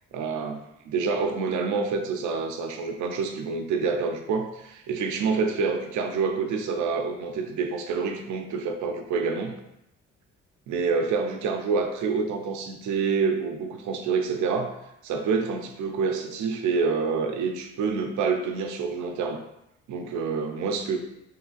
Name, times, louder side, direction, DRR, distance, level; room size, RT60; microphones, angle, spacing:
voice 1, 0.1-9.6 10.7-14.8 15.0-19.4 19.9-21.0, right 5 dB, 75° right, 5 dB, 0.5 m, -27 dB
3.2 x 2.3 x 2.4 m, 0.83 s
cardioid pair, 90°, 30 cm